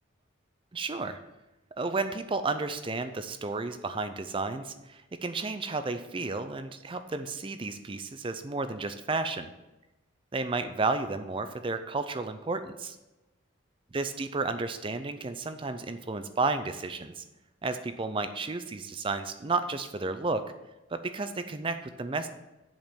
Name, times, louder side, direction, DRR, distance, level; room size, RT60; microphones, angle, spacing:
voice 1, 0.7-1.2 1.8-9.5 10.3-13.0 13.9-17.2 17.6-20.4 20.9-22.3, right 3 dB, 25° right, 10 dB, 0.4 m, -32 dB
7.2 x 5.3 x 6.0 m, 1.0 s
head